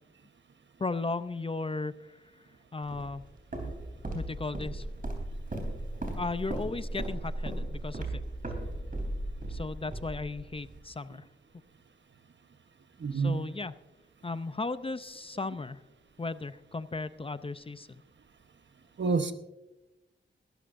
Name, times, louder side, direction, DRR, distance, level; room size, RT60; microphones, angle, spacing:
voice 1, 0.8-2.2 2.7-3.2 4.1-4.9 6.1-8.2 9.5-11.2 13.1-13.7 14.2-15.8 16.2-18.0, left 3 dB, 30° left, 13 dB, 0.5 m, -36 dB
Walk footsteps, 2.9-10.8, right 1 dB, 45° right, 3.4 m, -37 dB
voice 2, 13.0-13.4 19.0-19.3, right 4 dB, 65° right, 9 dB, 1.0 m, -28 dB
20.5 x 13.0 x 2.6 m, 1.0 s
wide cardioid pair, 85°, 20 cm